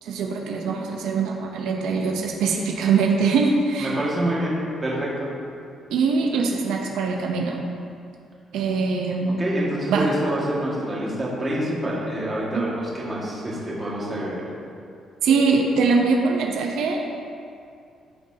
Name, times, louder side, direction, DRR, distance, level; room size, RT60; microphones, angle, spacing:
voice 1, 0.0-3.9 5.9-7.6 8.5-9.4 9.9-10.1 12.5-12.6 15.2-17.0, right 4 dB, 85° right, 1 dB, 0.9 m, -22 dB
voice 2, 3.8-5.3 9.4-14.4, right 1 dB, 20° right, -6 dB, 2.0 m, -26 dB
13.5 x 7.1 x 2.9 m, 2.4 s
cardioid pair, 160°, 0 cm